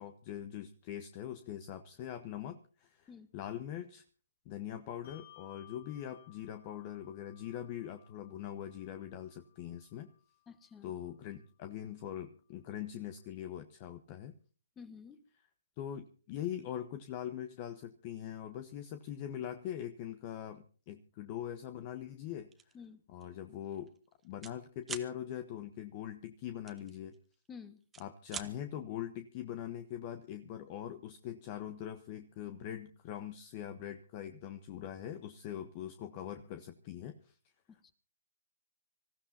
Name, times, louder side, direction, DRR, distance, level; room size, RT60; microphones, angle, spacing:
voice 1, 0.0-4.0 4.4-10.1 10.8-14.3 15.8-22.7 23.1-23.9 24.2-27.1 28.0-37.4, left 10 dB, 35° left, 9 dB, 1.1 m, -42 dB
Bell, 5.0-11.9, left 14 dB, 55° left, 2.7 m, -62 dB
voice 2, 10.5-10.9 14.8-15.2 22.7-23.0 27.5-27.8 37.7-37.9, left 6 dB, 15° left, 11 dB, 1.5 m, -51 dB
sound 1, 22.5-22.8 23.2-23.4 23.6-24.6 24.8-25.1 26.7-27.5 27.8-28.5, right 6 dB, 10° right, 1.2 m, -44 dB
26.0 x 15.0 x 2.8 m, 0.39 s
hypercardioid pair, 145°, 0 cm